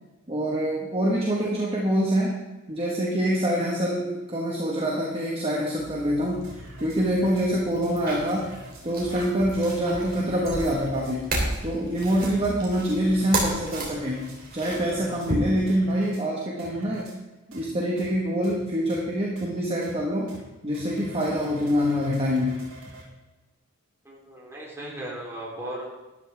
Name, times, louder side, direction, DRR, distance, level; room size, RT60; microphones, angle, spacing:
voice 1, 0.3-2.4 2.7-6.4 6.8-8.5 8.8-11.3 11.6-14.3 14.5-17.1 17.5-20.3 20.6-22.6, equal, 30° right, -3 dB, 1.6 m, -25 dB
sound 1, 5.8-15.3, right 2 dB, 45° right, 3.3 m, -34 dB
sound 2, 6.4-7.5 7.8-7.9 8.3-9.3 9.7-9.8 10.1-11.2 11.5-11.6 12.0-12.5 12.9-13.5 13.8-14.4 14.7-15.3 15.7-16.2 16.6-17.2 17.5-17.6 18.0-18.1 18.4-18.6 18.9-19.0 19.4-19.5 19.8-19.9 20.3-20.4 20.7-23.1, right 1 dB, 85° right, 3.8 m, -46 dB
voice 2, 24.1-25.9, right 1 dB, 15° right, -5 dB, 3.6 m, -37 dB
12.5 x 12.0 x 3.6 m, 1.1 s
head